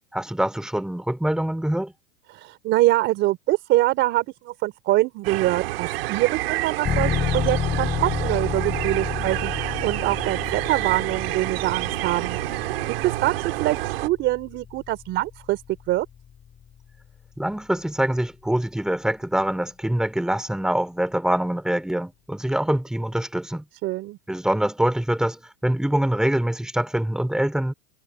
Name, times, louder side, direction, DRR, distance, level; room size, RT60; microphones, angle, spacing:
voice 1, 0.1-1.9 17.4-23.6 24.3-27.7, right 1 dB, ahead, 5.7 m, -24 dB
voice 2, 2.3-12.4 12.6-12.7 13.0-13.3 13.6-15.6 15.9-16.1 23.8-24.2, right 17 dB, 40° right, 3.8 m, -24 dB
sound 1, 5.2-14.1, right 18 dB, 70° right, 3.3 m, -28 dB
sound 2, 6.9-17.4, left 8 dB, 20° left, 7.4 m, -31 dB
supercardioid pair, 150°, 30 cm